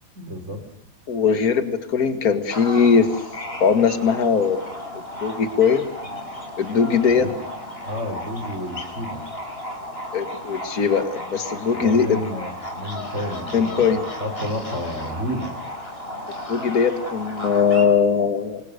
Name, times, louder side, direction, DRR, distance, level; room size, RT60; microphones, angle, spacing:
voice 1, 0.1-0.6 7.0-7.3 7.8-9.2 11.7-15.5, equal, 35° right, 5 dB, 4.2 m, -31 dB
voice 2, 1.1-3.1 3.6-4.6 5.2-5.9 6.6-7.3 10.1-12.2 13.5-14.0 16.5-18.6, left 6 dB, 45° left, 8 dB, 2.4 m, -20 dB
sound 1, 2.5-17.8, left 1 dB, 25° left, 5.5 m, -34 dB
28.5 x 25.5 x 6.8 m, 0.67 s
omnidirectional pair, 2.3 m